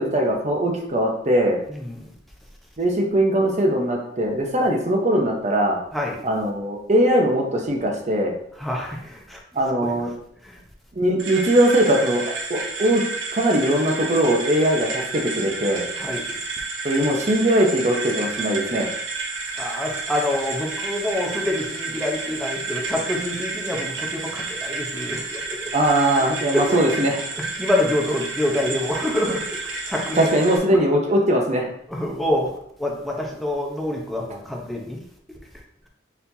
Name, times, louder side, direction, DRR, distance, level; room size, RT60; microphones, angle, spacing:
voice 1, 0.0-1.6 2.8-5.8 6.2-8.4 9.5-10.1 10.9-12.2 12.5-13.0 13.3-15.9 16.8-18.9 25.7-27.2 30.1-31.7, right 1 dB, 40° right, 0 dB, 0.9 m, -20 dB
voice 2, 1.7-2.0 5.9-6.2 8.6-9.4 9.8-9.9 10.4-10.6 16.0-16.4 19.6-25.7 26.2-26.8 27.4-30.3 31.9-32.5 32.8-35.0, left 1 dB, ahead, -2 dB, 0.8 m, -26 dB
sound 1, 11.2-30.6, right 3 dB, 80° right, 0.9 m, -31 dB
4.3 x 4.2 x 2.7 m, 0.70 s
head